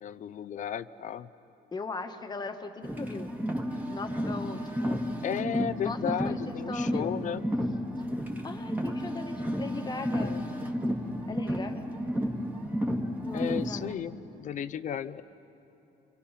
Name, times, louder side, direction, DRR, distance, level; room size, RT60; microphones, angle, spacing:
voice 1, 0.0-1.3 5.2-7.4 10.1-10.4 13.3-15.2, left 9 dB, 50° left, 14 dB, 0.6 m, -34 dB
voice 2, 1.7-3.3 3.9-5.0 5.8-7.2 8.4-10.4 11.3-11.9 13.2-13.9, left 4 dB, 25° left, 5 dB, 1.5 m, -39 dB
Car, 2.8-13.9, equal, 10° right, 2.0 m, -32 dB
28.5 x 26.0 x 5.8 m, 2.9 s
cardioid pair, 110°, 17 cm